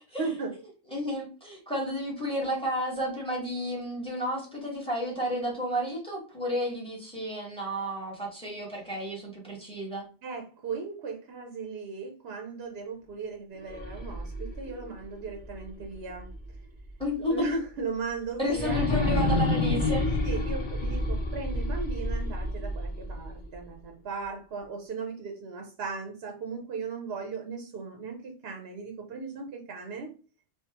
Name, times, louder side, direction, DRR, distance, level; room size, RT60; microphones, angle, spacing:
voice 1, 0.2-0.5 10.2-16.3 17.2-18.9 20.2-30.1, right 4 dB, 60° right, 3 dB, 0.9 m, -37 dB
voice 2, 0.9-10.1 17.0-17.6 18.4-20.1, equal, 5° left, -2 dB, 1.2 m, -31 dB
sound 1, 13.6-16.6 17.0-17.1 18.5-23.6, left 2 dB, 40° left, 1.3 m, -29 dB
3.5 x 3.1 x 2.9 m, 0.36 s
omnidirectional pair, 1.2 m